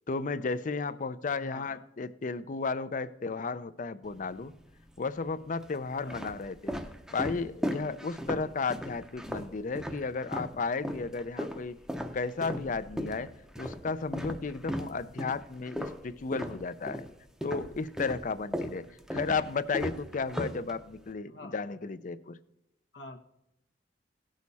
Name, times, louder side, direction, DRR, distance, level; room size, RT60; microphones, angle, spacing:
voice 1, 0.1-4.5 5.0-6.7 7.1-11.8 12.1-13.3 13.6-17.1 17.4-18.8 19.1-22.4, left 4 dB, 45° left, 15 dB, 0.5 m, -33 dB
voice 2, 1.4-1.8 6.0-6.2 18.6-18.9 21.3-21.6 22.9-23.2, left 1 dB, 90° left, 4 dB, 1.2 m, -47 dB
sound 1, 4.0-4.8 5.5-10.6 10.8-17.1 17.4-21.1, equal, 5° right, 0.7 m, -37 dB
17.0 x 6.5 x 4.1 m, 0.86 s
head